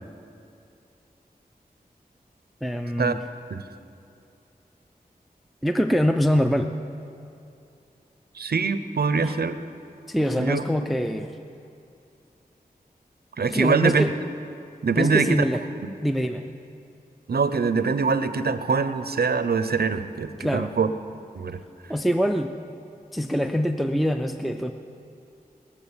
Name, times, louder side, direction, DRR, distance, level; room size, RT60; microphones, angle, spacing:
voice 1, 2.6-3.2 5.6-6.7 9.2-9.4 10.1-11.3 13.5-14.2 14.9-15.6 16.0-16.5 20.4-20.7 21.9-22.5 23.1-24.7, equal, ahead, 6 dB, 0.5 m, -24 dB
voice 2, 8.4-9.6 10.4-10.6 13.4-14.0 14.8-15.4 15.8-15.9 17.3-20.9 21.3-21.6, right 5 dB, 80° right, 11 dB, 0.7 m, -23 dB
20.5 x 7.3 x 7.1 m, 2.6 s
wide cardioid pair, 65°, 16 cm